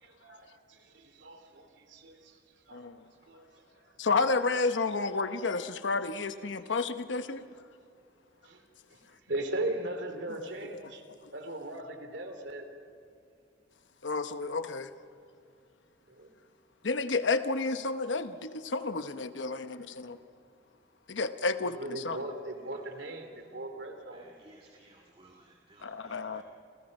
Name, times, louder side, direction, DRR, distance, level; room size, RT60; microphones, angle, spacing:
voice 1, 0.0-2.3 2.7-2.8 3.3-3.4 8.4-8.6 9.3-11.0 11.3-12.7 16.2-16.3 21.6-24.3, right 1 dB, 70° right, 6 dB, 3.0 m, -38 dB
voice 2, 4.0-7.5 10.4-10.9 14.0-14.9 16.8-20.2 21.1-22.2 25.8-26.4, left 3 dB, 80° left, 10 dB, 0.9 m, -31 dB
voice 3, 24.1-26.4, right 2 dB, 30° right, -1 dB, 1.8 m, -59 dB
29.5 x 29.0 x 5.4 m, 2.4 s
head